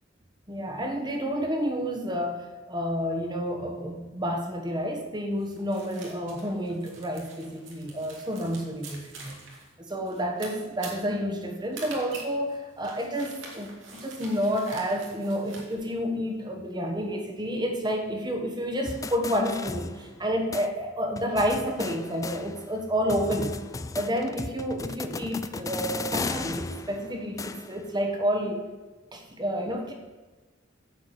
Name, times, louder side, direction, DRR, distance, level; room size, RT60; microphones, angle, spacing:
voice 1, 0.5-9.4 9.9-23.6 23.9-28.7 29.1-29.9, equal, 25° right, 3 dB, 1.3 m, -30 dB
sound 1, 5.4-15.7, right 3 dB, 85° right, 2.6 m, -45 dB
sound 2, 18.9-20.3 20.5-20.7 21.2-22.8 23.1-27.9, left 3 dB, 15° left, 0.3 m, -36 dB
9.6 x 4.8 x 8.0 m, 1.3 s
head